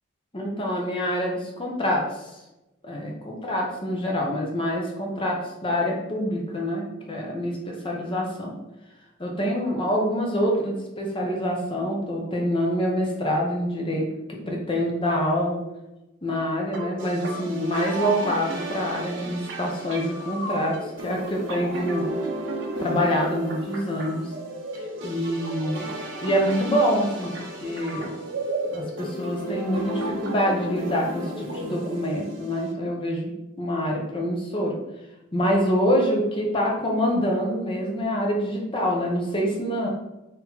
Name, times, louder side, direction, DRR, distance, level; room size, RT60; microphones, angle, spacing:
voice 1, 0.3-2.4 2.8-8.6 9.2-15.6 16.2-22.1 22.8-24.3 24.7-25.9 26.2-28.1 28.7-33.3 33.6-34.8 35.3-39.9, equal, 25° left, -1 dB, 0.8 m, -26 dB
sound 1, 16.7-32.7, right 1 dB, 60° right, 1.2 m, -33 dB
4.3 x 2.8 x 3.9 m, 0.97 s
head